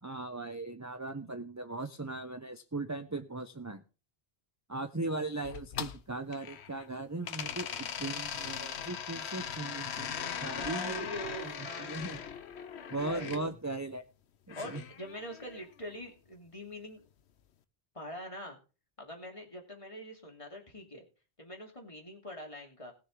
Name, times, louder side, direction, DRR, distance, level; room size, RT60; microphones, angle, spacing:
voice 1, 0.0-3.8 4.7-11.1 11.4-12.2 12.9-14.0 14.5-14.8, right 2 dB, 20° right, 8 dB, 0.7 m, -38 dB
sound 1, 5.4-6.9 7.2-13.4 14.5-15.6, left 8 dB, 90° left, 1.1 m, -39 dB
voice 2, 10.0-12.2 12.8-13.5 14.5-17.0 17.9-18.6 19.0-21.1 21.4-22.9, equal, 30° left, 1 dB, 2.8 m, -44 dB
19.5 x 6.7 x 3.7 m, 0.32 s
omnidirectional pair, 1.1 m